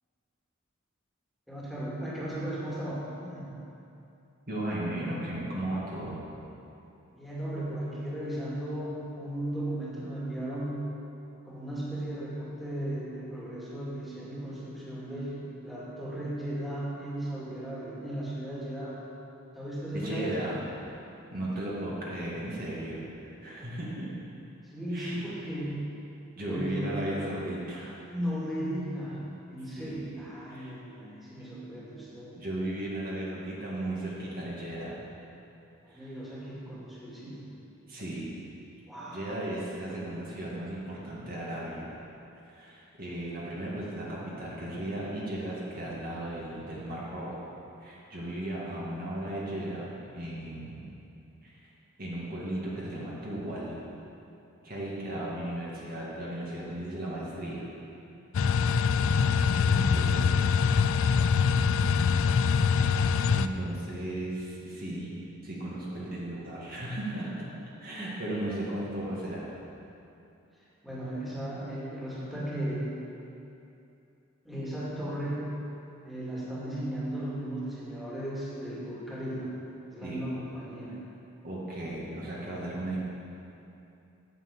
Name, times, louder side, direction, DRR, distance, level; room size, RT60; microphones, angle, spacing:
voice 1, 1.5-3.6 7.1-10.8 11.4-19.0 19.5-20.5 24.6-25.8 26.5-26.9 28.1-29.2 29.5-32.4 35.8-37.5 38.8-39.3 59.0-60.2 70.8-72.9 74.4-75.5 76.0-79.5 79.9-81.0, right 1 dB, ahead, -8 dB, 2.3 m, -36 dB
voice 2, 4.5-6.2 19.9-21.0 21.3-24.1 24.9-25.2 26.4-28.0 29.8-30.1 30.5-30.7 32.4-35.0 35.9-36.1 37.9-38.4 39.1-41.9 42.5-47.4 47.8-50.9 51.4-51.6 52.0-53.8 54.6-57.7 59.7-60.3 60.9-61.1 63.3-67.5 67.8-69.5 80.0-80.3 81.4-83.0, right 1 dB, 45° right, -6 dB, 2.0 m, -36 dB
sound 1, 58.3-63.5, left 6 dB, 65° left, 0.4 m, -24 dB
9.0 x 6.7 x 8.2 m, 2.8 s
head